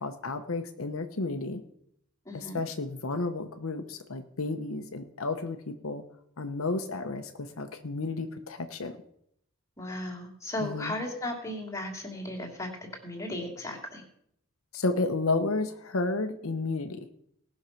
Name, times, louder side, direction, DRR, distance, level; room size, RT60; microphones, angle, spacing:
voice 1, 0.0-1.6 2.3-6.0 6.4-9.0 10.6-10.9 14.7-17.1, left 3 dB, 70° left, 7 dB, 0.9 m, -32 dB
voice 2, 2.2-2.6 9.8-12.7 13.0-14.0, left 1 dB, 15° left, 0 dB, 2.7 m, -36 dB
18.5 x 6.4 x 5.7 m, 0.73 s
head